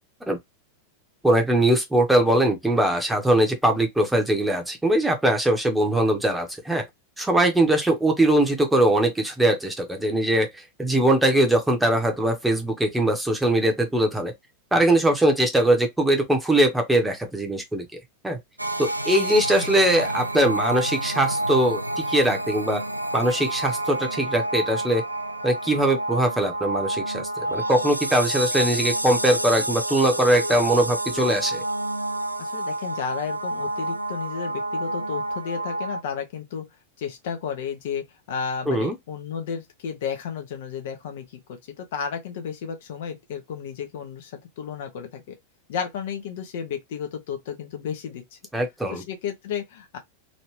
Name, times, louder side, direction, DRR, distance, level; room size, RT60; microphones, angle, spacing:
voice 1, 1.2-6.8 7.2-10.5 10.8-14.3 14.7-17.9 18.2-18.4 18.8-22.8 23.1-25.0 25.4-31.6 38.7-38.9 48.5-49.0, right 1 dB, 5° right, 1.1 m, -21 dB
sound 1, 18.6-36.0, right 1 dB, 85° right, 0.4 m, -29 dB
voice 2, 32.4-36.6 37.0-45.4 45.7-48.4 48.9-50.0, left 7 dB, 55° left, 1.0 m, -33 dB
3.1 x 2.8 x 3.2 m
figure-of-eight pair, 90°, 0 cm